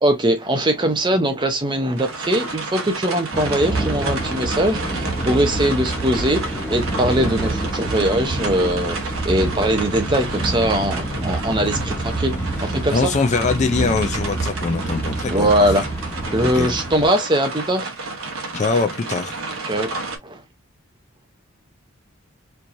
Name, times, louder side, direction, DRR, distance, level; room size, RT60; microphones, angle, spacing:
voice 1, 0.0-12.3 12.6-13.1 15.3-15.8 16.3-17.9 19.6-19.9 20.2-20.4, right 1 dB, 20° right, 0.7 m, -21 dB
sound 1, 2.0-20.2, right 3 dB, 75° right, 1.0 m, -31 dB
sound 2, 3.3-17.1, right 2 dB, 10° left, 0.9 m, -27 dB
voice 2, 12.9-15.5 16.4-16.7 18.5-19.4, left 4 dB, 35° left, 0.4 m, -22 dB
4.5 x 2.7 x 2.6 m
head